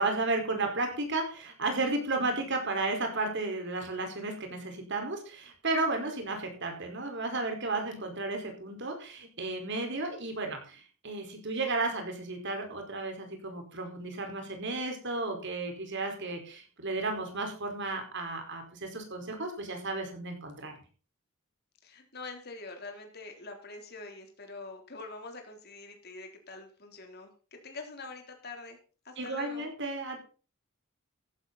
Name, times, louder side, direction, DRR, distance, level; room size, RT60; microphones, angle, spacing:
voice 1, 0.0-20.8 29.2-30.2, right 2 dB, 60° right, 4 dB, 4.8 m, -33 dB
voice 2, 21.8-27.3 27.6-28.8 29.0-29.7, left 3 dB, 50° left, 3 dB, 3.7 m, -44 dB
14.5 x 11.5 x 4.2 m, 0.37 s
head